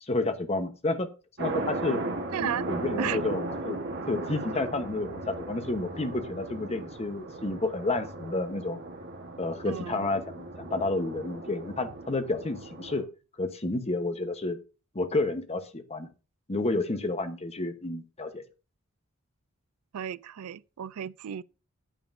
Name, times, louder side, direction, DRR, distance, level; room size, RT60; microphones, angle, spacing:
voice 1, 0.0-1.1 1.4-2.0 2.4-3.8 4.1-8.8 9.4-13.1 13.4-14.6 14.9-16.1 16.5-18.4, left 2 dB, 30° left, 1.0 m, -30 dB
sound 1, 1.4-13.0, right 2 dB, 55° right, 1.3 m, -36 dB
voice 2, 2.3-2.7 3.0-3.2 9.7-10.1 19.9-21.4, right 9 dB, 90° right, 0.4 m, -34 dB
9.4 x 9.0 x 2.6 m
head